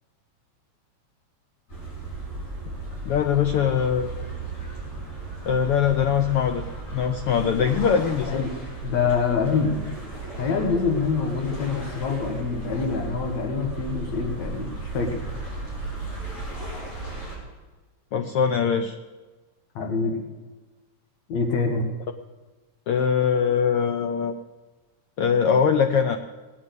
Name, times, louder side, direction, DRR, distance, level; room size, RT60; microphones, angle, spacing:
sound 1, 1.7-17.4, right 3 dB, 55° left, 6.0 m, -35 dB
voice 1, 3.1-4.1 5.5-6.6 6.9-8.4 18.1-18.9 22.9-24.3 25.2-26.2, left 7 dB, 85° left, 7 dB, 1.2 m, -22 dB
voice 2, 8.8-9.9 10.4-15.2 19.8-20.2 21.3-21.9, left 5 dB, 70° left, 3 dB, 2.8 m, -25 dB
18.0 x 8.6 x 8.2 m, 1.3 s
omnidirectional pair, 3.4 m